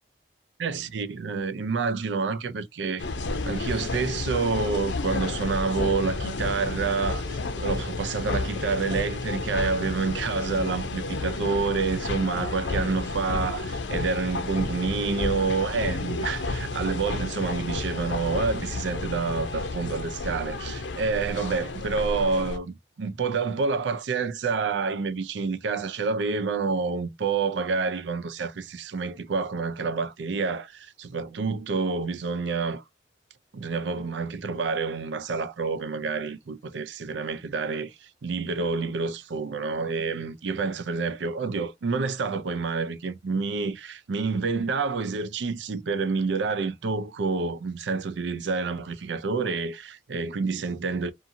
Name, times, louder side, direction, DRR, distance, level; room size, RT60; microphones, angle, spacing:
voice 1, 0.6-3.0 3.4-32.8 33.5-51.1, right 4 dB, 80° right, 0.5 m, -28 dB
sound 1, 3.0-22.6, left 3 dB, 80° left, 0.6 m, -31 dB
2.6 x 2.5 x 2.6 m
head